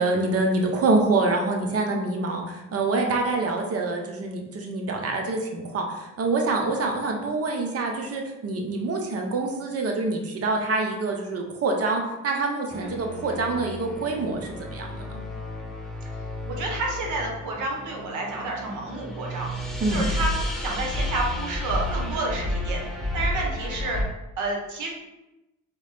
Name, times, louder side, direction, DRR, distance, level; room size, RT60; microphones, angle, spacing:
voice 1, 0.0-14.9 19.8-20.1, right 3 dB, 50° right, 2 dB, 0.9 m, -26 dB
sound 1, 12.7-24.0, left 1 dB, ahead, 0.8 m, -31 dB
voice 2, 16.5-19.5 19.9-20.3 20.6-22.8 23.1-24.0 24.4-24.9, right 2 dB, 80° right, 0 dB, 1.0 m, -30 dB
3.6 x 3.1 x 3.5 m, 0.96 s
cardioid pair, 90°, 30 cm